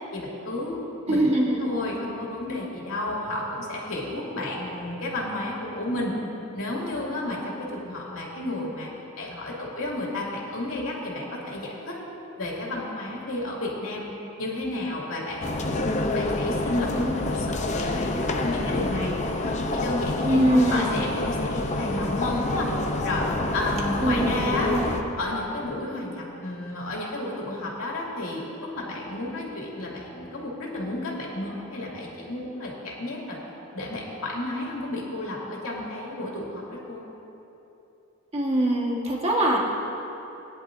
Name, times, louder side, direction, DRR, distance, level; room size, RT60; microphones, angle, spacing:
voice 1, 0.1-0.8 1.1-1.3 1.6-6.1 6.5-8.9 9.2-12.0 12.4-19.1 19.4-22.7 23.0-23.3 23.5-24.7 25.2-33.4 33.7-37.1, left 2 dB, 75° left, -4 dB, 2.4 m, -32 dB
voice 2, 1.1-1.6 20.2-21.0 24.0-25.0 38.3-39.6, right 1 dB, 30° right, -2 dB, 1.5 m, -23 dB
sound 1, 15.4-25.0, left 2 dB, 35° left, 0.7 m, -27 dB
19.5 x 10.5 x 2.6 m, 2.9 s
head